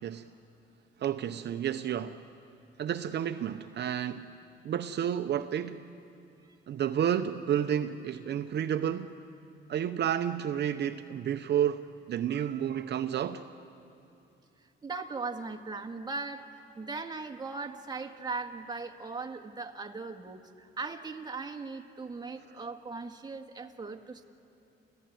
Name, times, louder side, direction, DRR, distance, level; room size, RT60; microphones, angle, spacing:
voice 1, 1.0-2.2 2.8-4.3 4.6-5.8 6.7-9.1 9.7-13.4, right 9 dB, 60° right, 8 dB, 0.7 m, -31 dB
voice 2, 14.8-24.2, right 4 dB, 20° right, 4 dB, 1.7 m, -39 dB
28.0 x 15.0 x 9.2 m, 2.7 s
cardioid pair, 90°, 20 cm